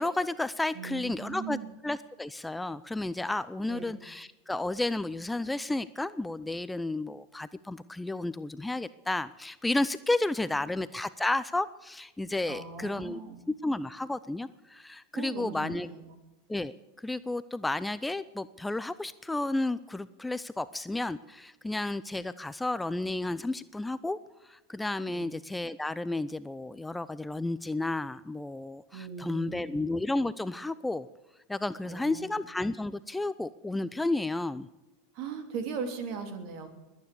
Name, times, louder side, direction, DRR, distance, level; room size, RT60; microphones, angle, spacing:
voice 1, 0.0-1.6 1.8-13.2 13.6-15.9 16.5-24.2 24.4-31.1 31.5-34.7, left 2 dB, 10° left, 16 dB, 0.5 m, -32 dB
voice 2, 0.7-1.7 3.7-4.0 10.6-10.7 12.5-13.4 15.1-16.1 25.1-25.3 28.9-29.7 31.8-32.3 35.1-36.7, right 6 dB, 55° right, 6 dB, 3.1 m, -39 dB
22.0 x 9.6 x 6.9 m, 1.0 s
hypercardioid pair, 100°, 0 cm